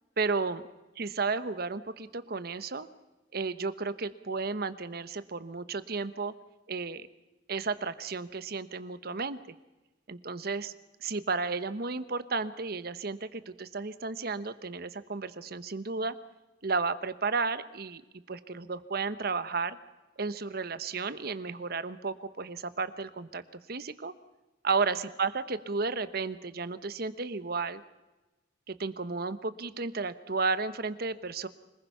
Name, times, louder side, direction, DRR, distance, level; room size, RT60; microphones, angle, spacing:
voice 1, 0.2-0.6 1.0-2.9 3.3-6.3 6.7-7.1 7.5-9.4 10.1-10.7 11.0-16.1 16.6-18.0 18.3-19.8 20.2-23.4 23.7-24.1 24.6-27.8 28.7-31.5, right 4 dB, 60° right, 13 dB, 1.0 m, -33 dB
26.0 x 20.0 x 5.7 m, 1.1 s
head